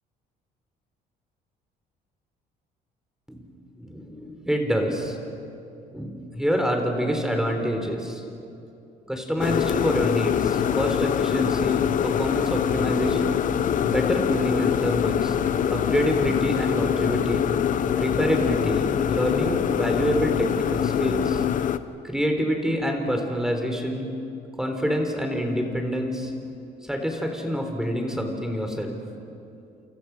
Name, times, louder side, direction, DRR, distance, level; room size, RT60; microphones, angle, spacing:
voice 1, 3.8-5.2 5.9-8.2 9.1-13.4 13.8-15.4 15.7-17.5 18.0-21.4 22.0-24.1 24.6-26.3 26.8-28.9, equal, 5° right, 3 dB, 4.0 m, -26 dB
sound 1, 9.4-21.8, left 9 dB, 50° left, 1.0 m, -24 dB
29.0 x 27.0 x 6.2 m, 2.7 s
cardioid pair, 110°, 17 cm